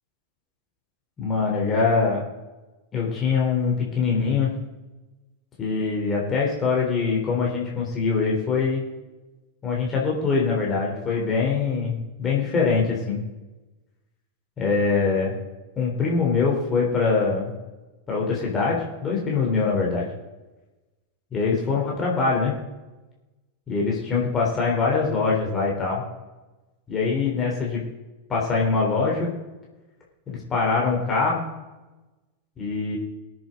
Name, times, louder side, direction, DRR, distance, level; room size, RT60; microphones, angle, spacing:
voice 1, 1.2-2.2 2.9-4.5 5.6-8.8 9.6-13.2 14.6-15.3 15.8-17.5 18.1-20.1 21.3-22.5 23.7-26.0 26.9-27.8 28.3-29.3 30.3-31.4 32.6-33.0, left 4 dB, 20° left, -3 dB, 3.6 m, -23 dB
22.5 x 7.8 x 3.9 m, 1.1 s
figure-of-eight pair, 90°, 0 cm